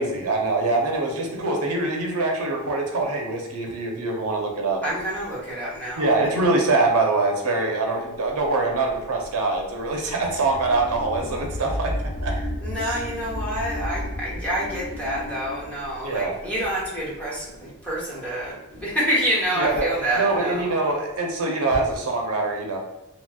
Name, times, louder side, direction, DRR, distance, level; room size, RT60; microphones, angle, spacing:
voice 1, 0.0-4.8 6.0-11.9 12.2-12.3 12.8-12.9 16.0-16.3 19.6-19.9 20.2-22.8, right 3 dB, 80° right, 0 dB, 0.7 m, -24 dB
voice 2, 4.8-6.1 12.3-20.7, right 1 dB, 5° left, -8 dB, 0.9 m, -27 dB
sound 1, 8.5-17.4, left 1 dB, 60° left, 0.7 m, -33 dB
3.0 x 2.8 x 2.3 m, 1.0 s
head